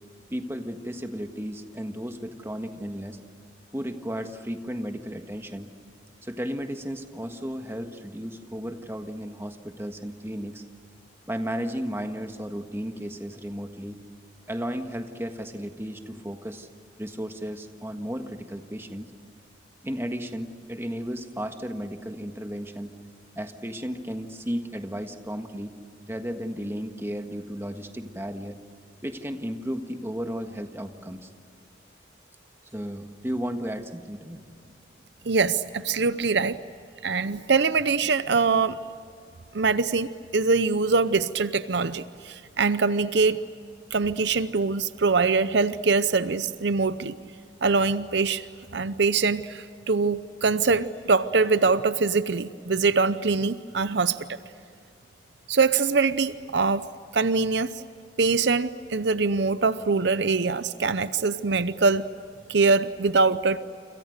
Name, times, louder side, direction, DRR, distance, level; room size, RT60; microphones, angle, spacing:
voice 1, 0.3-3.2 3.7-5.7 6.2-10.6 11.3-14.0 14.5-16.7 17.0-19.1 19.8-22.9 23.3-25.7 26.1-28.6 29.0-31.3 32.7-34.4, equal, 15° right, 6 dB, 1.5 m, -34 dB
voice 2, 35.3-36.6 37.0-38.8 39.5-43.4 43.9-47.1 47.6-48.5 48.7-54.4 55.5-56.9 57.1-57.8 58.2-62.0 62.5-63.6, right 4 dB, 65° right, 13 dB, 0.7 m, -23 dB
29.0 x 26.0 x 6.6 m, 2.4 s
head